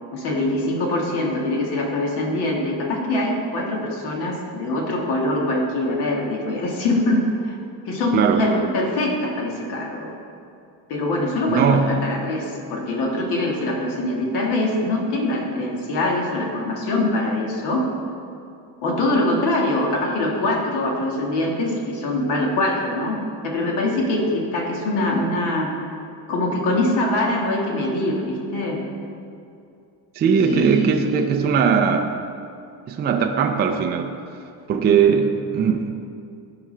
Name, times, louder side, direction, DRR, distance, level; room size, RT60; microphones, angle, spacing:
voice 1, 0.1-7.6 7.9-10.1 10.9-17.9 18.8-23.2 23.4-25.7 26.3-28.8 30.4-31.3 31.8-32.0, left 1 dB, 65° left, -1 dB, 1.8 m, -23 dB
voice 2, 8.1-8.4 11.6-12.0 30.1-32.1 32.9-34.1 34.7-36.0, right 6 dB, 25° right, 3 dB, 0.4 m, -19 dB
14.0 x 4.9 x 3.3 m, 2.5 s
cardioid pair, 140°, 43 cm